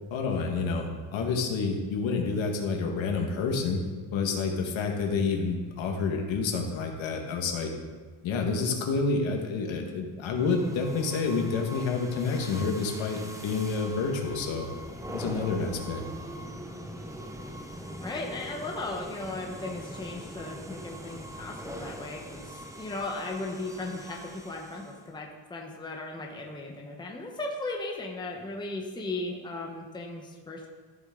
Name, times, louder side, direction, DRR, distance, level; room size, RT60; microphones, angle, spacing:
voice 1, 0.1-3.8 4.1-7.7 8.2-14.7 15.1-16.0, left 4 dB, 65° left, 2 dB, 1.8 m, -29 dB
sound 1, 10.3-25.1, equal, 5° right, 0.7 m, -42 dB
voice 2, 18.0-30.7, left 2 dB, 10° left, 0 dB, 1.0 m, -37 dB
13.5 x 7.2 x 3.9 m, 1.4 s
cardioid pair, 140°, 50 cm